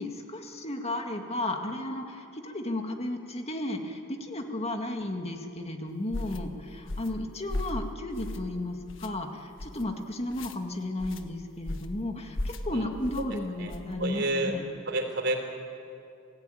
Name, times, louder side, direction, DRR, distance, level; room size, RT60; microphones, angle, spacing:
voice 1, 0.0-14.6, left 1 dB, 30° left, 4 dB, 2.0 m, -34 dB
sound 1, 6.1-6.4 6.9-7.2 7.5-7.8 8.2-8.5 8.9-9.1 9.6-9.8 10.3-10.6 11.0-11.2 11.7-12.0 12.3-12.7 13.0-13.3 13.7-13.9, left 1 dB, 70° left, 1.5 m, -35 dB
voice 2, 14.0-14.5 14.9-15.4, right 2 dB, 60° right, 4 dB, 3.8 m, -29 dB
29.5 x 16.5 x 9.2 m, 2.6 s
head